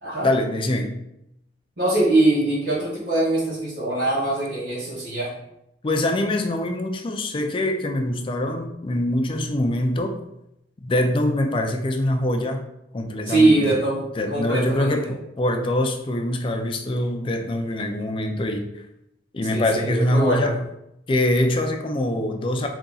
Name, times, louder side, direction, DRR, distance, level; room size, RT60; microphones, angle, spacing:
voice 1, 0.2-1.0 5.8-10.2 10.8-12.6 12.9-13.7 14.2-18.7 19.3-20.6 21.1-22.7, left 1 dB, 30° left, 4 dB, 0.4 m, -24 dB
voice 2, 1.8-5.3 13.2-15.1 19.5-20.5, right 2 dB, 80° right, -11 dB, 1.2 m, -22 dB
2.8 x 2.7 x 3.7 m, 0.81 s
head